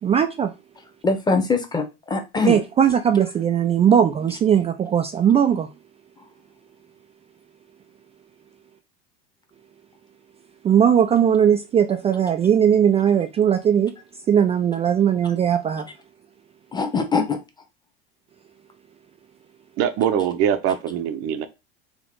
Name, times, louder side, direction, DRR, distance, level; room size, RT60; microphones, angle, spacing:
voice 1, 0.0-0.5 2.4-5.7 10.6-15.9, right 8 dB, 20° right, 0.3 m, -19 dB
voice 2, 1.0-2.6 6.2-6.3 16.7-17.4, left 4 dB, 15° left, 1.0 m, -22 dB
voice 3, 19.8-21.5, right 9 dB, 50° right, 0.7 m, -22 dB
3.6 x 2.6 x 3.8 m
hypercardioid pair, 80°, 30 cm